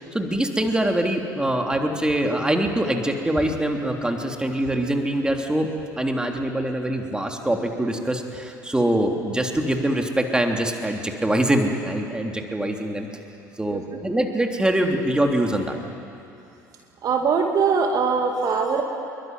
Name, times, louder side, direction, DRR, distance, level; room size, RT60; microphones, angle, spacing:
voice 1, 0.1-5.7 6.0-13.1 13.6-15.8, right 1 dB, 10° right, 3 dB, 3.4 m, -24 dB
voice 2, 17.0-18.8, right 5 dB, 40° right, 3 dB, 2.4 m, -21 dB
26.0 x 23.0 x 9.8 m, 2.7 s
figure-of-eight pair, 65°, 9 cm